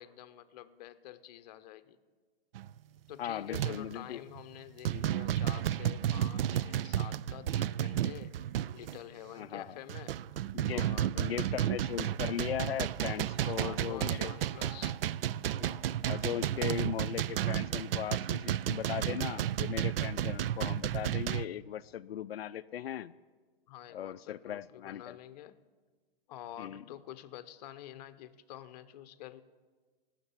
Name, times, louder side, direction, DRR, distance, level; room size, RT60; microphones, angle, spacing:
voice 1, 0.0-2.0 3.1-8.4 8.7-10.2 10.7-11.3 13.4-15.0 23.7-25.6 26.3-29.4, left 12 dB, 45° left, 12 dB, 0.8 m, -48 dB
sound 1, 2.5-2.8 3.5-3.9 4.4-4.5 4.8-9.0 9.6-21.4, right 11 dB, 70° right, 0.4 m, -32 dB
voice 2, 3.2-4.2 4.9-5.0 9.4-9.8 10.5-10.9 11.2-14.3 15.5-23.1 23.9-25.2 26.6-26.8, left 10 dB, 90° left, 12 dB, 0.4 m, -38 dB
17.0 x 6.6 x 8.2 m, 1.4 s
hypercardioid pair, 135°, 29 cm